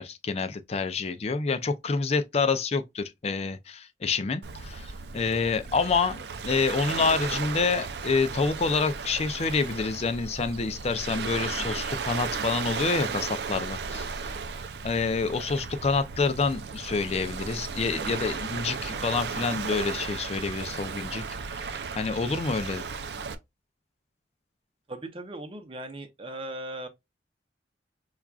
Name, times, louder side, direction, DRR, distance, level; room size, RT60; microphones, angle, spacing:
voice 1, 0.0-14.1 14.8-21.2 21.5-22.8, left 4 dB, 35° left, 0.4 m, -28 dB
Waves surf, 4.4-23.4, right 5 dB, 65° right, 0.5 m, -35 dB
voice 2, 24.9-26.9, right 1 dB, 30° right, 0.7 m, -38 dB
5.8 x 2.4 x 2.3 m
head